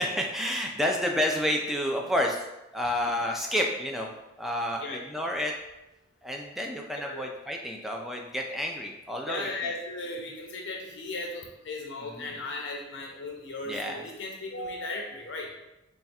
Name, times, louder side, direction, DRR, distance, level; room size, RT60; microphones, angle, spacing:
voice 1, 0.0-2.4 2.7-4.1 4.4-5.5 6.2-9.5 12.0-12.3 13.7-14.1, left 1 dB, ahead, 1 dB, 0.3 m, -30 dB
voice 2, 6.9-7.3 9.3-15.5, left 2 dB, 65° left, 1 dB, 0.5 m, -36 dB
3.4 x 2.4 x 4.1 m, 0.95 s
head